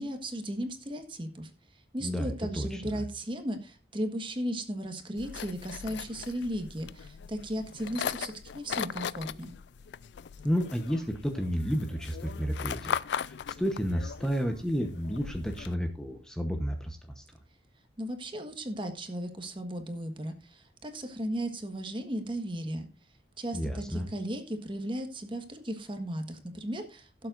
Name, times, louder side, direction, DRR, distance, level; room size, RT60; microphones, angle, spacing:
voice 1, 0.0-1.5 1.9-9.5 18.0-22.9 23.4-27.3, equal, 30° right, 6 dB, 1.4 m, -36 dB
voice 2, 2.0-3.0 10.4-17.2 23.5-24.1, equal, 5° left, 4 dB, 0.9 m, -31 dB
sound 1, 5.2-15.7, left 7 dB, 70° left, 0.4 m, -39 dB
16.5 x 7.6 x 2.5 m, 0.33 s
head